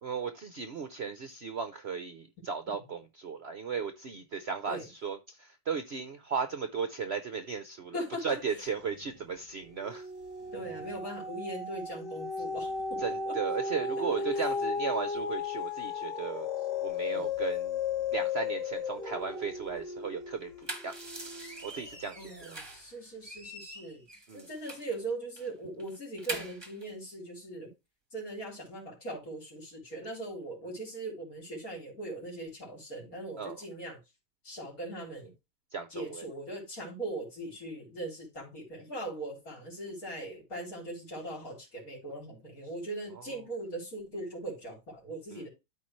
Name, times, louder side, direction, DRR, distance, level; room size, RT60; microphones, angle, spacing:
voice 1, 0.0-10.1 13.0-16.5 16.8-17.8 18.1-20.5 20.8-20.9 21.6-22.6 24.3-24.5 33.4-33.6 35.7-36.2 45.3-45.4, right 6 dB, 55° right, 0.8 m, -36 dB
voice 2, 7.9-8.4 10.5-13.0 13.2-13.4 14.0-14.5 17.1-17.3 22.1-24.0 24.3-27.7 28.1-34.0 34.4-35.3 35.9-45.5, right 1 dB, 55° left, 4.3 m, -40 dB
sound 1, 8.7-9.2 9.6-22.1 22.6-22.7, left 5 dB, 75° left, 2.6 m, -35 dB
sound 2, 20.4-22.9 23.2-25.0 25.4-25.5 25.8-26.8, right 1 dB, 15° right, 1.4 m, -43 dB
13.0 x 4.6 x 3.2 m
omnidirectional pair, 1.8 m